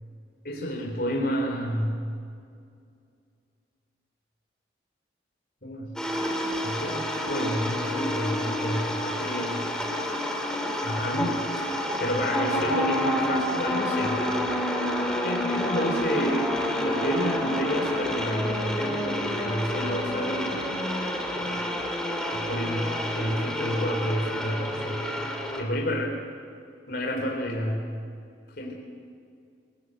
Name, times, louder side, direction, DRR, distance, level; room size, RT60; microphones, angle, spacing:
voice 1, 0.4-2.0 5.6-6.0 6.5-9.6 10.8-11.3 12.0-14.2 15.2-20.7 21.3-21.6 22.3-25.1 25.6-26.1 26.9-27.9 28.6-28.7, equal, 55° left, 1 dB, 3.9 m, -30 dB
sound 1, 6.0-25.6, left 1 dB, 5° left, 2.7 m, -29 dB
28.0 x 18.5 x 7.9 m, 2.3 s
head